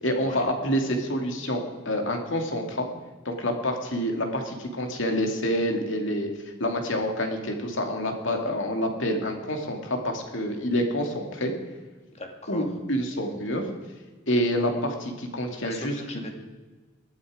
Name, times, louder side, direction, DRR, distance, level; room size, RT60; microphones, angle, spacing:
voice 1, 0.0-2.9 3.2-6.3 6.6-11.5 12.5-13.7 14.3-15.9, equal, 65° left, 3 dB, 2.6 m, -27 dB
voice 2, 12.1-12.7 15.6-16.3, left 1 dB, 30° left, 4 dB, 2.1 m, -38 dB
19.5 x 13.0 x 5.1 m, 1.3 s
head